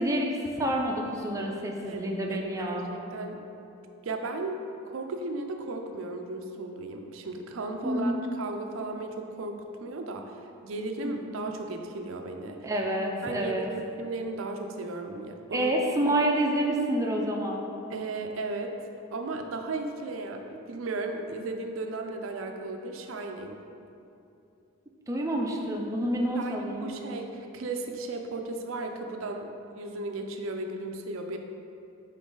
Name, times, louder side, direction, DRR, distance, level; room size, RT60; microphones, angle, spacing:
voice 1, 0.0-2.9 7.8-8.2 11.0-11.2 12.6-13.7 15.5-17.6 25.1-26.9, right 1 dB, 15° right, -1 dB, 0.5 m, -28 dB
voice 2, 1.8-3.4 4.0-10.4 10.6-12.7 13.2-15.7 17.9-18.7 19.1-23.6 26.3-31.4, right 2 dB, 80° right, 4 dB, 0.5 m, -35 dB
6.1 x 4.1 x 3.8 m, 2.7 s
head